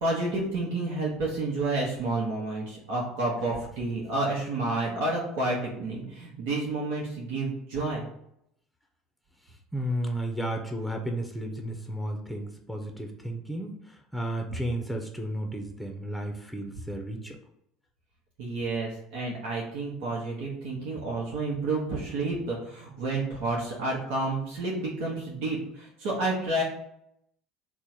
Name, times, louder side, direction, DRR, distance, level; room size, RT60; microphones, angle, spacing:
voice 1, 0.0-8.1 18.4-26.6, right 2 dB, 75° right, -4 dB, 0.9 m, -30 dB
voice 2, 9.7-17.4, right 1 dB, ahead, 2 dB, 0.7 m, -33 dB
3.5 x 2.1 x 4.4 m, 0.76 s
hypercardioid pair, 80°, 0 cm